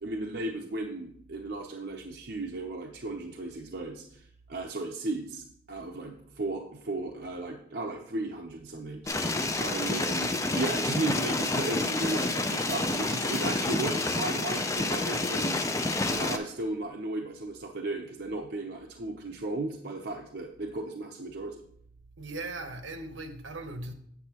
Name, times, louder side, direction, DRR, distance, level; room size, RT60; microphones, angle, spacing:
voice 1, 0.0-9.3 9.6-15.6 16.1-21.6, right 2 dB, 55° right, 0.7 m, -35 dB
sound 1, 9.1-16.4, left 2 dB, 15° left, 0.4 m, -29 dB
voice 2, 22.2-23.9, right 2 dB, 75° right, 1.0 m, -38 dB
8.1 x 7.5 x 2.9 m
head